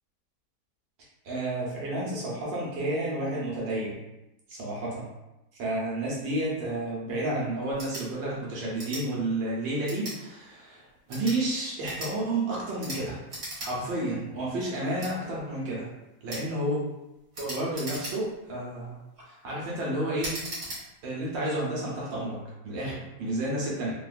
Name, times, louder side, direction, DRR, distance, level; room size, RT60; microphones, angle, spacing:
voice 1, 1.2-4.0 4.5-5.1 5.6-10.8 11.1-13.2 13.6-15.9 16.2-16.8 17.4-19.0 19.3-20.4 21.0-23.9, right 1 dB, 70° right, -5 dB, 1.5 m, -31 dB
sound 1, 7.7-8.1 8.8-9.0 9.8-10.2 11.0-11.4 11.8-12.1 12.8-13.0 13.3-13.7 14.1-14.2 15.0-15.1 16.3-16.5 17.3-18.4 19.0-19.3 20.2-20.8, right 1 dB, 55° right, 1.7 m, -38 dB
3.8 x 2.2 x 2.4 m, 0.93 s
omnidirectional pair, 2.1 m